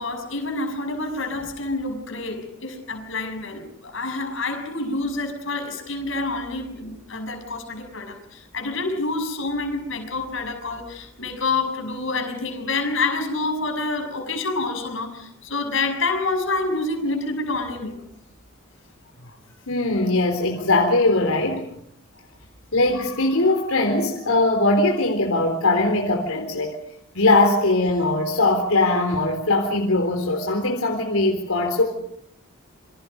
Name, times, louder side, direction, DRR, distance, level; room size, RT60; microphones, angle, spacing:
voice 1, 0.0-18.0 19.2-19.3, left 3 dB, 65° left, 6.3 m, -27 dB
voice 2, 19.7-21.7 22.7-26.8 27.1-31.8, left 2 dB, 90° left, 3.9 m, -20 dB
28.0 x 25.5 x 5.4 m
head